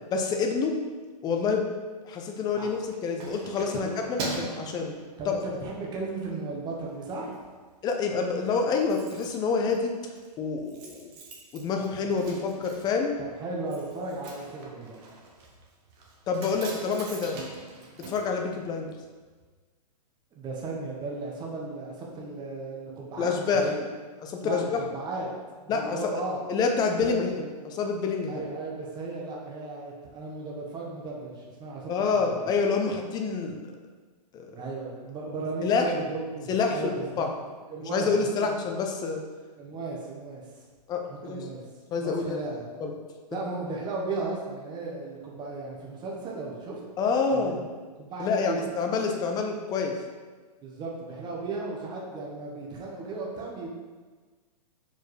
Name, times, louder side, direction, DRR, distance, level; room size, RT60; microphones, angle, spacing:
voice 1, 0.1-0.8 1.2-1.7 2.0-4.9 5.3-5.4 7.8-9.9 10.4-11.1 11.5-13.2 16.3-17.4 18.1-18.9 23.2-23.7 24.2-24.8 25.7-26.2 26.5-28.4 31.9-33.6 34.3-34.5 35.6-35.9 36.5-37.3 37.9-39.2 40.9-41.4 41.9-42.4 42.8-42.9 47.0-47.6 48.2-49.9, left 5 dB, 20° left, 3 dB, 0.7 m, -27 dB
Keys jangling, 2.6-5.7 6.1-6.4 6.7-7.4 7.7-7.8 8.0-8.1 8.3-19.1 19.4-19.5, right 3 dB, 40° right, 1.3 m, -42 dB
voice 2, 5.2-7.4 13.2-15.0 20.3-23.8 24.4-25.3 25.6-26.4 27.0-27.1 28.3-32.5 34.5-37.3 37.7-38.5 39.6-40.5 41.1-41.6 42.0-42.7 43.3-46.8 47.3-47.6 48.0-48.9 50.6-53.7, right 3 dB, 20° right, -3 dB, 1.4 m, -35 dB
5.0 x 4.4 x 4.9 m, 1.4 s
hypercardioid pair, 130°, 21 cm